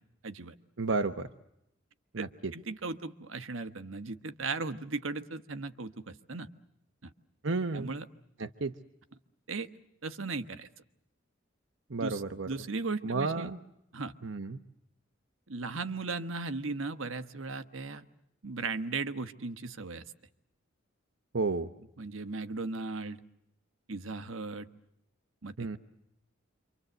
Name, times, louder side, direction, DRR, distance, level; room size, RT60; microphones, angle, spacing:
voice 1, 0.2-0.5 2.2-2.3 2.5-6.5 7.0-7.1 7.7-8.0 9.5-9.7 10.0-10.7 12.0-13.5 13.9-14.1 15.5-18.1 18.4-20.0 22.0-23.2 23.9-24.7 25.4-25.8, right 3 dB, 80° right, 10 dB, 1.3 m, -37 dB
voice 2, 0.8-1.3 2.1-2.5 7.4-7.9 8.4-8.7 11.9-12.5 13.0-13.6 14.2-14.6 21.3-21.7 25.6-25.8, right 3 dB, 65° right, 8 dB, 1.0 m, -32 dB
28.0 x 25.5 x 7.9 m, 0.82 s
head